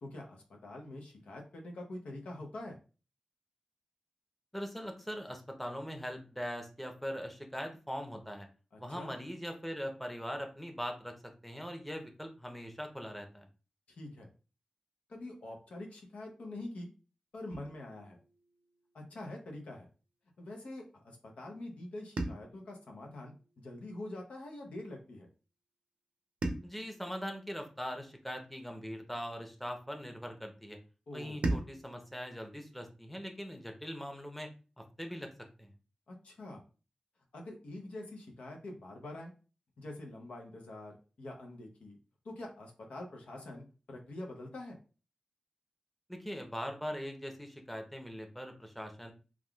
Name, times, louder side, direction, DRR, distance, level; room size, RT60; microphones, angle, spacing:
voice 1, 0.0-2.8 8.7-9.1 13.9-14.3 15.1-16.9 17.3-18.2 18.9-19.9 20.4-23.3 23.6-25.3 31.1-31.4 36.1-36.6 37.3-39.3 39.8-42.0 42.2-44.8, left 1 dB, 90° left, 1 dB, 0.6 m, -45 dB
voice 2, 4.5-8.5 8.8-11.1 11.4-13.5 26.6-30.8 31.1-34.5 35.0-35.3 35.6-35.7 46.1-49.1, equal, 5° left, 4 dB, 0.7 m, -41 dB
sound 1, 17.5-19.7 22.2-24.5 26.4-28.9 31.4-34.0, right 2 dB, 75° right, 0.5 m, -42 dB
3.5 x 2.3 x 2.3 m, 0.34 s
cardioid pair, 50°, 2 cm